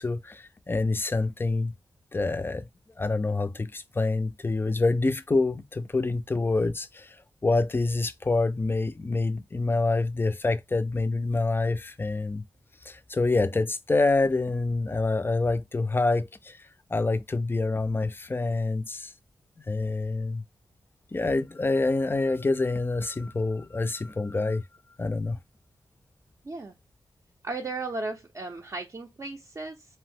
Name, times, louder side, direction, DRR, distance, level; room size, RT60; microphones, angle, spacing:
voice 1, 0.0-1.7 2.1-2.6 3.0-7.2 7.4-12.4 12.9-16.6 16.9-19.1 19.7-20.4 21.1-24.6 25.0-25.4, left 3 dB, 25° left, 0.3 m, -26 dB
voice 2, 27.4-29.9, right 3 dB, 40° right, 0.5 m, -35 dB
2.6 x 2.0 x 3.5 m
cardioid pair, 60°, 8 cm